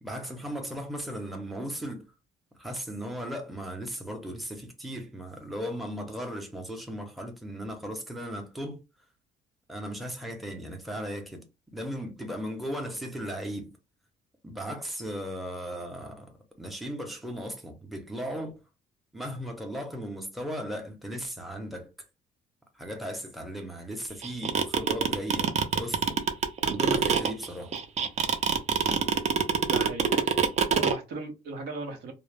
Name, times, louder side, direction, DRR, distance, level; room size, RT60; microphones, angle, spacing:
voice 1, 0.0-2.0 2.6-8.8 9.7-11.4 11.7-13.7 14.4-18.6 19.1-21.9 22.7-26.2 26.6-27.8, equal, ahead, 0.7 m, -36 dB
sound 1, 24.2-30.9, right 6 dB, 40° right, 0.5 m, -24 dB
voice 2, 29.6-30.1 30.8-32.1, right 3 dB, 75° right, 0.8 m, -37 dB
2.2 x 2.0 x 3.2 m
cardioid pair, 110°, 17 cm